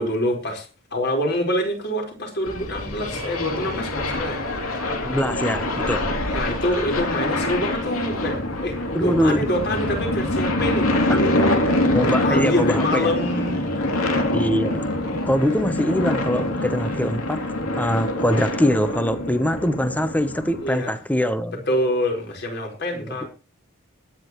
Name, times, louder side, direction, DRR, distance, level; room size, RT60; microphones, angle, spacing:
voice 1, 0.0-4.5 5.2-5.6 6.3-13.6 20.6-21.0 21.7-23.3, left 1 dB, 50° left, 4.4 m, -26 dB
sound 1, 2.4-20.7, left 1 dB, 80° left, 2.8 m, -25 dB
voice 2, 5.0-6.1 8.9-9.4 11.1-11.2 11.9-13.1 14.3-14.8 15.3-17.5 17.7-21.6 23.0-23.3, equal, 5° left, 0.8 m, -23 dB
21.5 x 9.9 x 3.1 m
head